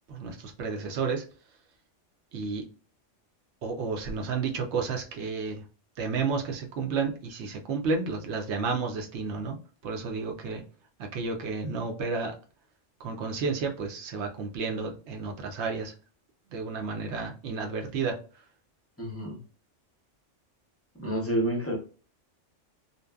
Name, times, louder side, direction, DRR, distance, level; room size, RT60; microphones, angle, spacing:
voice 1, 0.1-1.2 2.3-2.7 3.6-5.6 6.0-9.6 9.8-10.6 11.0-12.3 13.0-15.9 16.5-18.2, right 4 dB, 70° right, 3 dB, 0.9 m, -31 dB
voice 2, 19.0-19.4 21.0-21.8, right 1 dB, 15° left, -1 dB, 0.5 m, -29 dB
2.6 x 2.2 x 2.2 m, 0.37 s
omnidirectional pair, 1.2 m